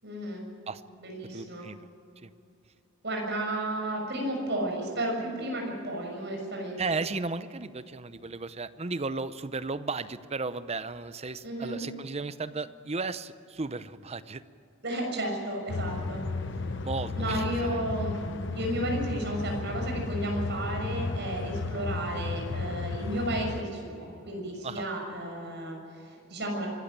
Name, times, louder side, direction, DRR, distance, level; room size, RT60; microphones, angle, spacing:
voice 1, 0.0-0.4 1.0-1.6 3.0-7.0 11.4-11.8 14.8-16.2 17.2-18.2 18.5-26.7, right 1 dB, 55° right, 1 dB, 6.5 m, -33 dB
voice 2, 1.3-1.8 2.2-2.3 6.8-14.4 16.8-17.8 24.6-24.8, right 3 dB, 30° right, 13 dB, 0.7 m, -35 dB
sound 1, 15.7-23.6, left 3 dB, 60° left, 1.0 m, -34 dB
25.0 x 13.5 x 8.7 m, 2.6 s
head